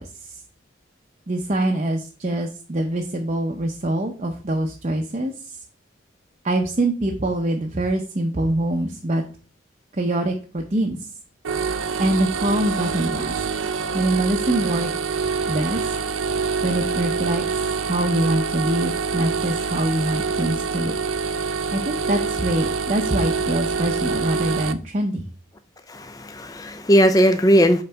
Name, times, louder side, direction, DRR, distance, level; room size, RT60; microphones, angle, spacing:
voice 1, 1.3-5.6 6.4-9.2 10.0-11.1 12.0-13.4 13.9-14.9 15.5-15.9 16.6-17.4 17.8-21.0 21.7-25.2, right 1 dB, 35° right, 0.6 m, -24 dB
sound 1, 11.4-24.7, right 5 dB, 90° right, 0.5 m, -25 dB
voice 2, 25.9-27.8, equal, 20° left, 0.4 m, -18 dB
5.5 x 3.9 x 5.6 m
head